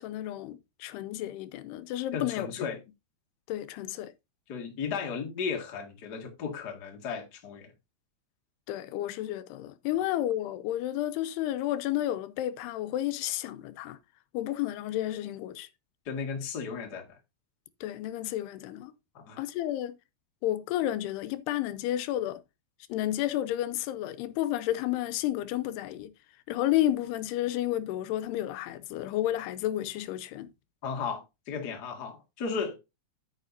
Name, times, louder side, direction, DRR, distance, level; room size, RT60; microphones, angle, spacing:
voice 1, 0.0-2.5 3.5-4.1 8.7-14.0 14.3-15.7 17.8-18.9 19.4-20.0 20.4-22.4 22.9-26.1 26.5-30.5, left 13 dB, 85° left, 2.7 m, -31 dB
voice 2, 2.1-2.8 4.5-7.7 16.0-17.2 19.1-19.4 30.8-32.8, left 5 dB, 40° left, 1.5 m, -35 dB
9.2 x 9.1 x 2.6 m
omnidirectional pair, 4.7 m